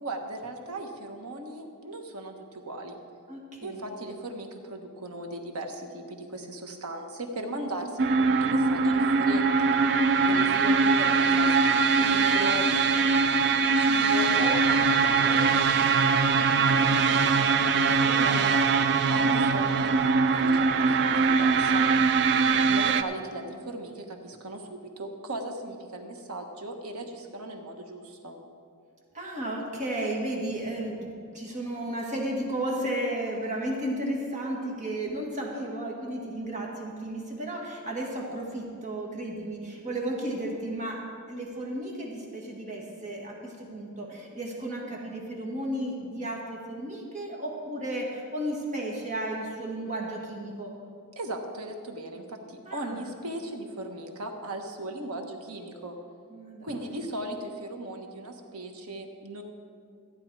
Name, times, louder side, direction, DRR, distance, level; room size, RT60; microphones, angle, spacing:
voice 1, 0.0-3.0 3.6-9.7 10.3-16.0 16.6-18.6 19.1-21.9 22.7-28.4 51.2-55.9 56.6-59.4, right 1 dB, 75° right, 4 dB, 1.3 m, -37 dB
voice 2, 3.3-3.9 10.1-10.4 22.3-22.7 29.1-50.7 52.7-53.0 56.3-57.0, right 1 dB, 35° right, -1 dB, 1.9 m, -34 dB
sound 1, 8.0-23.0, right 4 dB, 50° right, 0.5 m, -22 dB
14.5 x 9.5 x 4.8 m, 2.3 s
head